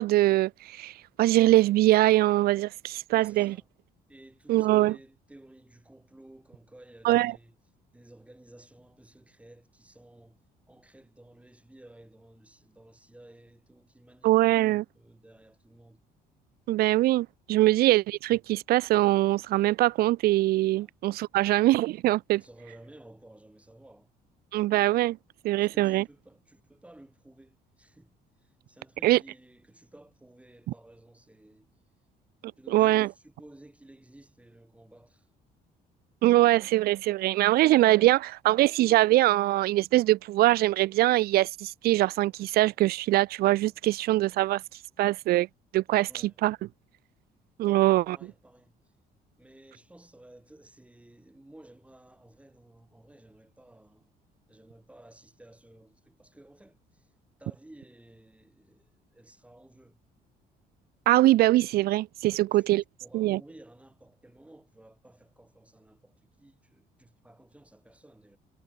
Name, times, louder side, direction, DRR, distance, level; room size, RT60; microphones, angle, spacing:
voice 1, 0.0-3.6 4.5-5.0 7.0-7.3 14.2-14.8 16.7-22.4 24.5-25.2 25.4-26.1 29.0-29.2 32.7-33.1 36.2-44.6 45.0-45.5 45.7-46.6 47.6-48.2 61.1-62.8 63.1-63.4, right 16 dB, 65° right, 0.4 m, -23 dB
voice 2, 3.1-3.7 4.1-7.5 7.9-10.4 10.7-16.0 20.7-20.9 22.3-24.1 25.6-28.2 28.4-31.7 32.6-35.3 46.1-46.4 47.6-48.8 49.4-54.1 54.5-57.1 57.4-60.0 62.3-62.6 63.0-68.4, right 1 dB, 5° right, 4.8 m, -54 dB
cardioid pair, 110°, 17 cm